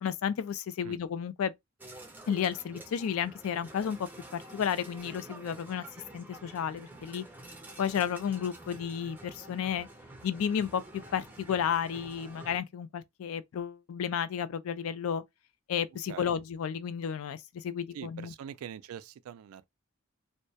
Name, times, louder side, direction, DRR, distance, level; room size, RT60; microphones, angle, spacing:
voice 1, 0.0-1.5 2.3-5.9 6.1-7.2 7.8-9.9 10.2-15.2 15.7-18.3, left 8 dB, 80° left, 0.3 m, -32 dB
sound 1, 1.8-12.6, right 2 dB, 10° right, 0.4 m, -49 dB
voice 2, 17.9-19.7, right 8 dB, 85° right, 0.3 m, -43 dB
2.2 x 2.0 x 2.6 m
head